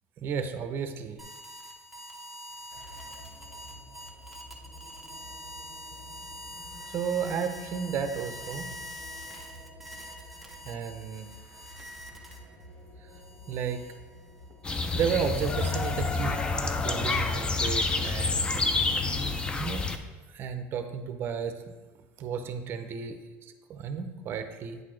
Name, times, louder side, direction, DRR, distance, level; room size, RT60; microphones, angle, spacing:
voice 1, 0.2-1.2 6.9-8.7 10.7-11.3 13.5-13.8 14.9-16.4 16.7-18.5 19.6-19.8 20.3-21.7 22.2-23.2 23.4-24.8, right 6 dB, 40° right, 7 dB, 0.6 m, -33 dB
sound 1, 1.2-12.7 13.1-16.5, equal, 5° right, 0.8 m, -45 dB
sound 2, 2.7-19.9, left 1 dB, 50° left, 2.1 m, -51 dB
sound 3, 14.6-20.0, left 3 dB, 15° left, 0.4 m, -28 dB
9.1 x 4.1 x 3.2 m, 1.3 s
supercardioid pair, 135°, 6 cm